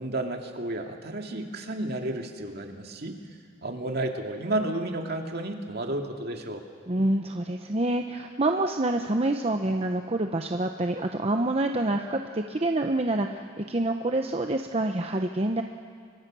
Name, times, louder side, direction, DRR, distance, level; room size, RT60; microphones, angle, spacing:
voice 1, 0.0-3.2 3.6-6.6, right 1 dB, 55° right, 3 dB, 2.2 m, -32 dB
voice 2, 6.9-15.6, right 2 dB, 30° right, 4 dB, 0.9 m, -27 dB
30.0 x 23.5 x 6.3 m, 2.1 s
head